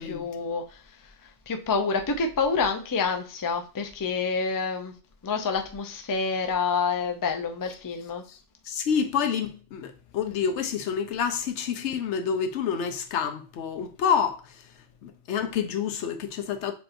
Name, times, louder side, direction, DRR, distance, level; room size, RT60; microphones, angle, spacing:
voice 1, 0.0-4.9 5.2-8.2, left 5 dB, 30° left, 0.3 m, -28 dB
voice 2, 8.7-14.4 15.0-16.7, left 7 dB, 80° left, 0.9 m, -28 dB
6.8 x 2.9 x 2.5 m
omnidirectional pair, 1.2 m